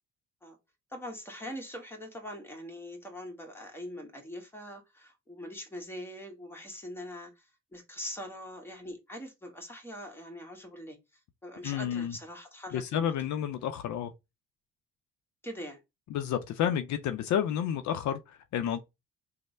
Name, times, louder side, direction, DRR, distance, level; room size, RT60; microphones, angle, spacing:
voice 1, 0.9-7.5 7.7-11.0 11.4-13.1 15.4-15.8, equal, 5° left, 1.1 m, -42 dB
voice 2, 11.6-12.2 12.7-14.1 16.1-18.8, left 9 dB, 70° left, 0.5 m, -30 dB
3.2 x 2.1 x 4.1 m
cardioid pair, 90°, 30 cm